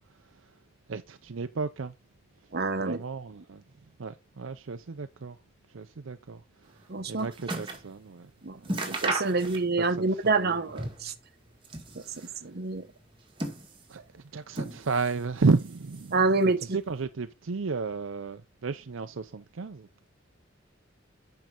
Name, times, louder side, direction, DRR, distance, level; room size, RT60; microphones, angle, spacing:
voice 1, 0.9-1.9 2.8-3.6 4.0-5.4 5.7-6.4 7.1-8.6 9.3-10.7 12.0-12.5 13.9-16.2 16.6-19.9, right 4 dB, 75° right, 0.6 m, -33 dB
voice 2, 2.5-3.0 6.9-7.3 8.4-8.6 8.9-11.1 12.2-12.8 16.1-16.8, right 3 dB, 55° right, 1.0 m, -27 dB
sound 1, 6.7-7.9 8.2-8.3 8.6-9.9 10.2-11.2 11.5-12.4 13.0-14.0 14.5-15.2 15.5-16.3 17.0-17.1, right 2 dB, 25° right, 1.9 m, -35 dB
9.2 x 5.7 x 3.7 m
head